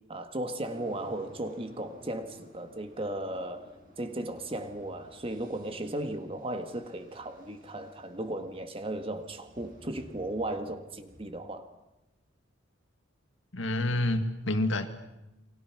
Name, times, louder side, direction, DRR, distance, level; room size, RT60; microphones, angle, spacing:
voice 1, 0.1-3.7 4.0-11.7, right 1 dB, 30° right, 7 dB, 1.7 m, -36 dB
sound 1, 0.6-11.6, equal, 45° right, 5.8 m, -55 dB
voice 2, 13.5-14.9, left 1 dB, 75° left, 8 dB, 2.0 m, -28 dB
29.0 x 24.0 x 6.1 m, 0.96 s
head